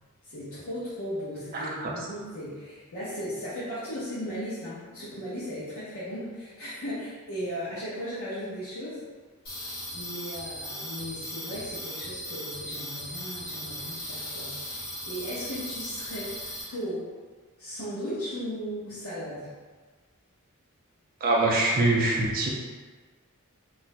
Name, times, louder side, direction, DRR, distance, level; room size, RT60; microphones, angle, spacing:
voice 1, 0.2-9.0 9.9-17.1 17.6-19.5, equal, 65° left, -12 dB, 0.8 m, -36 dB
Computer Processing, 9.5-16.6, equal, 40° left, 1.2 m, -38 dB
voice 2, 21.2-22.5, right 2 dB, 40° right, -2 dB, 0.4 m, -23 dB
2.5 x 2.1 x 3.9 m, 1.4 s
head